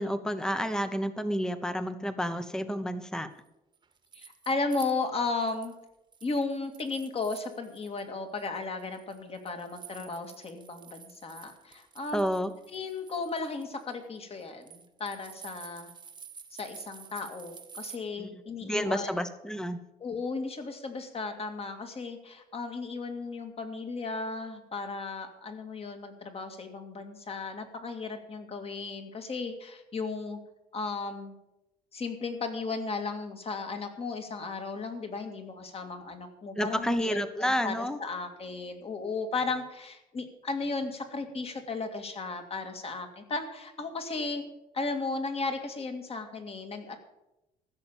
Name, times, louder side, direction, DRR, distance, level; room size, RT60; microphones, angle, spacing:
voice 1, 0.0-3.3 12.1-12.5 18.2-18.3 18.6-19.8 36.6-38.0, equal, 5° left, 11 dB, 0.9 m, -30 dB
sound 1, 3.7-5.8 6.1-8.0 8.4-18.0, right 6 dB, 25° right, 1.3 m, -50 dB
voice 2, 4.1-5.7 6.2-12.3 12.7-15.9 16.5-19.2 20.0-30.4 30.7-31.3 31.9-44.4 44.7-47.0, left 3 dB, 35° left, 6 dB, 2.1 m, -35 dB
15.0 x 6.8 x 7.3 m, 0.92 s
cardioid pair, 110°, 17 cm